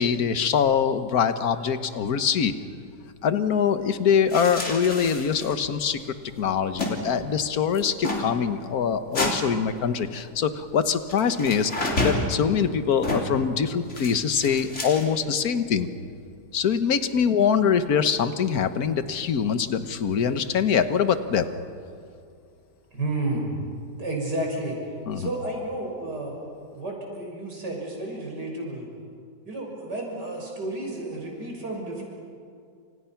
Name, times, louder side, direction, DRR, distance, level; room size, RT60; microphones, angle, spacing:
voice 1, 0.0-2.5 3.2-6.0 6.4-15.9 16.5-21.5 25.1-25.3, left 7 dB, 60° left, 10 dB, 1.6 m, -23 dB
sound 1, 4.3-5.7 6.0-6.1 6.3-6.9 7.2-7.4 7.7-8.2 9.1-9.4 11.1-12.3 13.0-13.4 13.9-15.2, left 2 dB, 40° left, 3.9 m, -29 dB
voice 2, 22.9-23.5 23.9-24.8 25.1-26.4 26.7-28.9 29.4-32.0, right 2 dB, 75° right, 0 dB, 6.6 m, -31 dB
29.0 x 28.0 x 5.9 m, 2.3 s
omnidirectional pair, 1.8 m